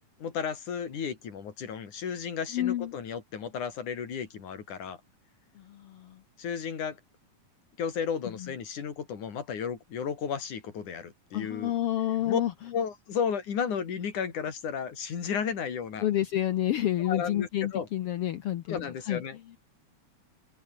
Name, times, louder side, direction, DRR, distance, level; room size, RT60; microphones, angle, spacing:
voice 1, 0.2-5.0 6.4-7.0 7.8-11.7 12.3-12.4 12.7-16.1 17.0-17.9 18.7-19.4, left 7 dB, 90° left, 4.6 m, -33 dB
voice 2, 2.5-2.9 5.5-6.2 8.4-8.5 11.3-12.5 16.0-19.2, left 12 dB, 65° left, 1.5 m, -29 dB
omnidirectional pair, 3.4 m